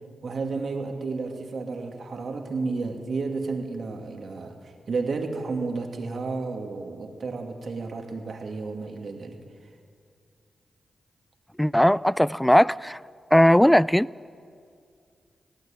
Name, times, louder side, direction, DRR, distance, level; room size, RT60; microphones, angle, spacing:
voice 1, 0.2-9.4, right 4 dB, 65° right, 2.6 m, -32 dB
voice 2, 11.6-13.0 13.3-14.1, equal, 5° left, 0.4 m, -18 dB
18.0 x 17.5 x 8.9 m
supercardioid pair, 45°, 0 cm